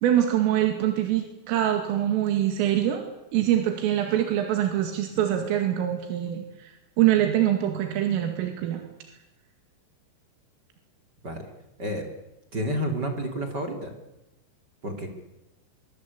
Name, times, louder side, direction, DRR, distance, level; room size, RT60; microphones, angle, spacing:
voice 1, 0.0-3.0 3.3-8.8, right 11 dB, 90° right, 5 dB, 4.7 m, -24 dB
voice 2, 12.5-13.9 14.8-15.2, equal, 25° right, 4 dB, 2.7 m, -30 dB
24.5 x 23.0 x 8.5 m, 0.96 s
omnidirectional pair, 5.7 m